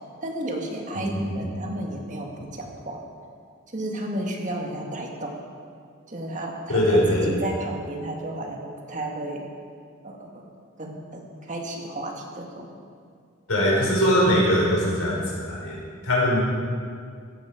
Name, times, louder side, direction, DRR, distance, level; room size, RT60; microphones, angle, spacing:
voice 1, 0.0-3.1 3.7-5.4 6.1-9.5 10.0-10.5 10.8-12.7, right 1 dB, 35° right, 1 dB, 1.8 m, -33 dB
voice 2, 0.9-1.5 6.7-7.3 13.5-15.2 15.5-15.7 16.0-16.4, equal, 80° left, -4 dB, 5.1 m, -21 dB
15.5 x 13.5 x 5.1 m, 2.1 s
head